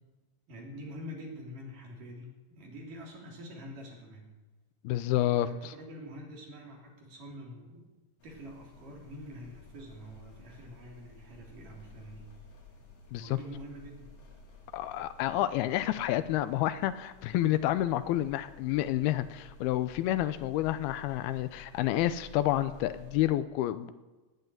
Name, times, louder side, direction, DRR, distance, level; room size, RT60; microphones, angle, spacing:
voice 1, 0.5-4.4 5.4-7.9 8.2-12.3 13.1-14.1, equal, 55° right, -1 dB, 4.8 m, -46 dB
voice 2, 4.8-5.7 13.1-13.3 14.7-23.9, left 13 dB, 85° left, 13 dB, 2.6 m, -29 dB
sound 1, 8.2-23.2, left 2 dB, 45° left, 3.0 m, -54 dB
19.0 x 8.2 x 9.1 m, 1.2 s
omnidirectional pair, 4.5 m